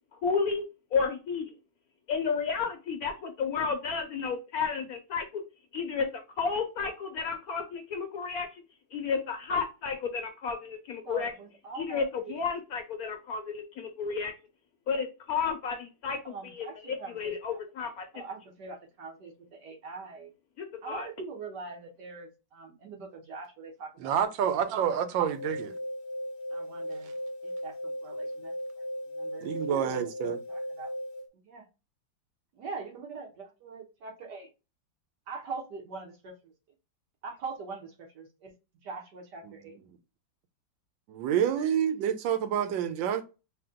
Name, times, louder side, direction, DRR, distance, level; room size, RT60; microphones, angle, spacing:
voice 1, 0.1-0.6 0.9-1.5 2.1-5.4 5.7-8.6 8.9-11.3 11.7-14.3 14.9-18.1 20.6-21.1, left 5 dB, 65° left, 0.9 m, -32 dB
voice 2, 11.0-12.3 16.2-20.3 20.8-24.2 24.5-25.0 26.5-27.1 27.4-30.9 31.4-31.7 32.5-34.5 35.3-36.5 37.2-38.5 38.8-39.8, right 4 dB, 65° right, 1.5 m, -43 dB
voice 3, 24.0-25.7 29.4-30.4 39.4-39.5 41.1-43.2, right 9 dB, 85° right, 1.4 m, -28 dB
sound 1, 25.3-31.3, equal, 50° left, 0.5 m, -37 dB
4.2 x 2.2 x 3.6 m
omnidirectional pair, 2.0 m